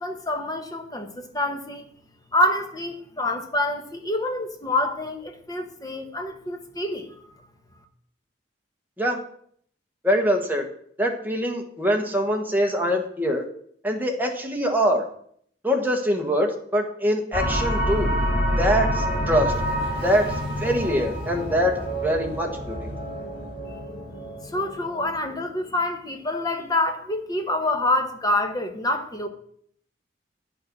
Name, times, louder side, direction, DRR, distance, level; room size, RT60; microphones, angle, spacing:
voice 1, 0.0-1.8 2.3-7.4 24.5-29.3, left 1 dB, 20° left, 1.1 m, -26 dB
voice 2, 10.0-10.7 11.0-13.4 13.8-15.0 15.6-18.1 18.6-19.5 20.0-22.8, equal, 10° right, 1.3 m, -23 dB
sound 1, 17.3-25.4, equal, 55° left, 3.7 m, -27 dB
9.5 x 6.6 x 6.0 m
head